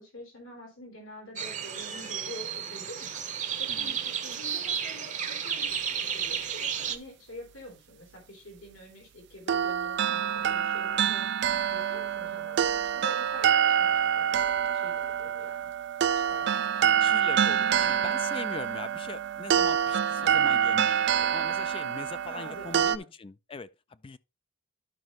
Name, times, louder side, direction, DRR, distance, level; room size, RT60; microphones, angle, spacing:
voice 1, 0.0-11.2 11.7-15.7 16.3-17.1 20.2-20.8 22.3-23.1, left 1 dB, 85° left, 3.6 m, -47 dB
sound 1, 1.4-7.0, right 8 dB, 40° right, 0.8 m, -33 dB
sound 2, 9.5-23.0, right 8 dB, 60° right, 0.4 m, -26 dB
voice 2, 17.0-24.2, left 4 dB, 25° left, 0.4 m, -41 dB
11.5 x 5.3 x 3.0 m
head